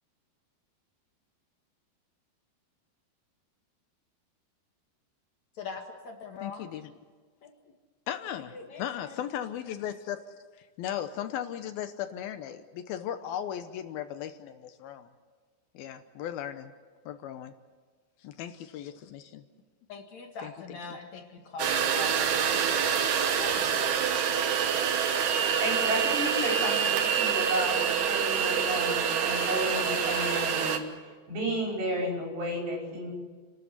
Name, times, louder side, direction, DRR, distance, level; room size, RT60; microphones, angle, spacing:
voice 1, 5.5-6.7 7.4-7.5 8.5-9.2 19.9-23.0 23.4-23.8, left 4 dB, 50° left, 3 dB, 2.7 m, -42 dB
voice 2, 6.4-6.9 8.1-10.2 10.8-15.1 15.7-16.7 17.1-17.5 18.2-19.4 20.4-20.5, left 10 dB, 75° left, 9 dB, 2.5 m, -37 dB
sound 1, 21.6-30.8, right 7 dB, 60° right, 2.4 m, -26 dB
voice 3, 25.6-33.1, right 1 dB, 85° right, -1 dB, 7.8 m, -32 dB
29.5 x 12.5 x 9.6 m, 1.5 s
omnidirectional pair, 4.8 m